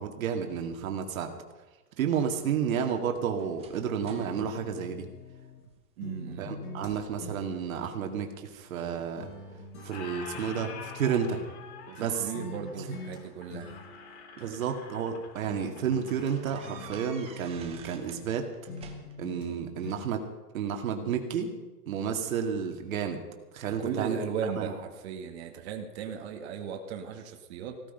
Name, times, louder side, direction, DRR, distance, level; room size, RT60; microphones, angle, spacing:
voice 1, 0.0-1.3 2.0-5.1 6.4-9.3 9.8-11.4 12.0-12.3 12.9-13.0 14.4-18.5 19.2-20.2 20.5-21.5 21.9-23.2 23.5-24.2 24.6-24.7, right 7 dB, 60° right, 4 dB, 2.2 m, -31 dB
sound 1, 2.3-5.8 6.2-6.5 6.8-7.5 7.9-8.7 9.3-10.7 11.9-12.0 13.2-14.6 15.1-15.3 15.6-15.7 16.2-18.3 18.5-19.4, right 6 dB, 10° right, 1.1 m, -51 dB
sound 2, 4.1-5.7 6.0-8.9 9.2-12.0 12.3-13.2 13.5-15.1 15.5-18.4 18.7-19.5 19.8-20.0, left 4 dB, 65° left, 5.4 m, -45 dB
voice 2, 6.0-6.5 11.9-13.8 14.4-14.6 19.5-19.7 23.7-27.8, right 7 dB, 45° right, 4 dB, 1.9 m, -37 dB
Squeak, 8.9-9.5 9.8-17.4, left 5 dB, 40° left, 3.2 m, -47 dB
17.0 x 13.5 x 5.5 m, 1.2 s
hypercardioid pair, 160°, 47 cm